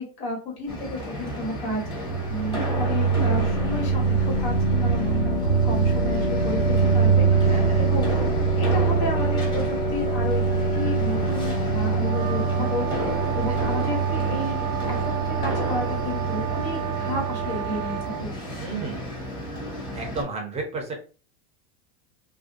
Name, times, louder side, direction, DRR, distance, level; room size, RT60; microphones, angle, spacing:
voice 1, 0.0-8.1 8.6-10.4 10.7-18.3, left 2 dB, 75° left, -1 dB, 1.5 m, -32 dB
sound 1, 0.7-20.2, equal, 15° left, 0.9 m, -33 dB
sound 2, 1.7-18.4, right 4 dB, 50° left, 1.0 m, -24 dB
voice 2, 7.3-7.9 13.5-14.1 16.9-17.1 18.6-19.0 19.9-20.9, right 3 dB, 20° right, 2 dB, 0.5 m, -34 dB
sound 3, 12.0-18.3, right 14 dB, 75° right, 0.6 m, -33 dB
2.5 x 2.2 x 2.4 m, 0.36 s
supercardioid pair, 140°, 30 cm